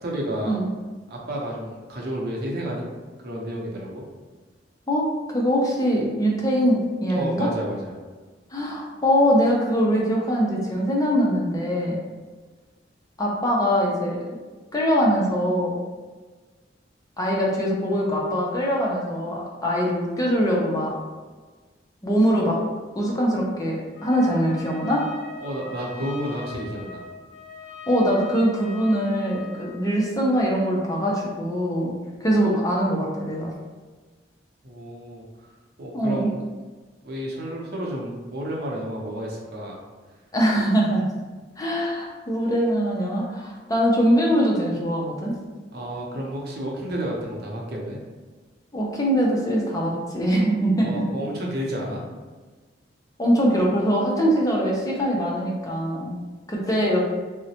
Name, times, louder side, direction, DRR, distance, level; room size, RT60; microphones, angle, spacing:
voice 1, 0.0-0.6 1.1-2.9 3.2-4.0 7.1-7.9 25.4-27.0 34.6-35.2 35.8-36.3 37.0-39.8 45.7-48.0 50.8-52.0, right 1 dB, 60° right, -2 dB, 0.7 m, -31 dB
voice 2, 4.9-7.5 8.5-12.0 13.2-14.4 14.7-15.8 17.2-21.0 22.0-22.6 22.9-25.1 27.9-31.9 32.2-33.5 35.9-36.3 40.3-41.0 41.6-45.4 48.7-51.0 53.2-56.1 56.5-57.0, equal, 20° left, -3 dB, 0.5 m, -22 dB
Trumpet, 23.9-29.8, left 5 dB, 65° left, 0.5 m, -41 dB
3.8 x 2.1 x 2.8 m, 1.3 s
head